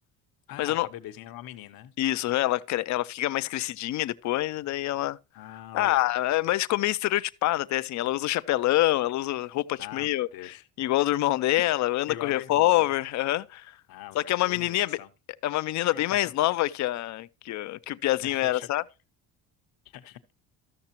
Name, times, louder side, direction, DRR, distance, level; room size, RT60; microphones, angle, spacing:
voice 1, 0.5-1.9 5.4-6.1 9.8-10.7 12.1-13.0 13.9-15.1 15.9-16.3 18.2-18.7 19.8-20.2, left 12 dB, 70° left, 0.9 m, -43 dB
voice 2, 2.0-5.2 5.7-13.8 14.1-15.0 15.4-18.8, left 15 dB, 50° left, 0.4 m, -26 dB
13.5 x 6.6 x 2.9 m
cardioid pair, 130°, 38 cm